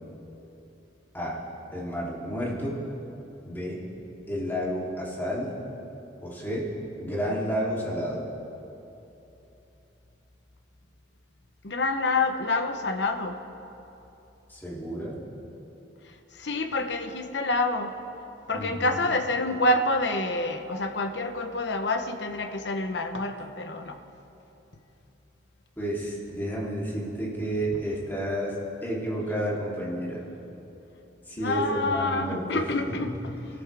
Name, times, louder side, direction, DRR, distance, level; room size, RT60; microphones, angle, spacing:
voice 1, 1.7-2.8 3.4-3.8 4.3-5.5 6.2-6.7 7.0-8.3 14.5-15.2 18.5-19.0 25.8-28.5 28.8-30.2 31.3-33.1, equal, 10° left, -6 dB, 3.1 m, -31 dB
voice 2, 11.6-13.4 16.3-17.9 18.5-24.0 31.4-33.1, left 2 dB, 65° left, 6 dB, 1.0 m, -27 dB
24.0 x 14.0 x 3.5 m, 3.0 s
head